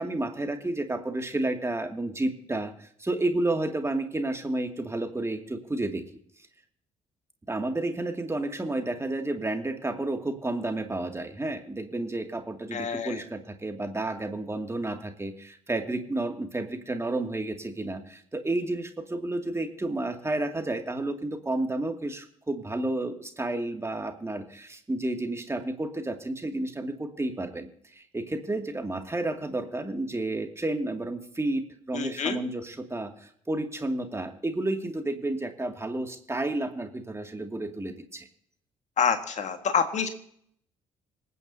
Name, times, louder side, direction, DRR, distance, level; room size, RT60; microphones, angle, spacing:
voice 1, 0.0-6.0 7.5-38.3, right 2 dB, 15° right, 5 dB, 2.3 m, -31 dB
voice 2, 12.7-13.2 31.9-32.4 39.0-40.1, left 7 dB, 45° left, 7 dB, 1.7 m, -27 dB
26.5 x 9.6 x 2.8 m, 0.65 s
figure-of-eight pair, 45°, 17 cm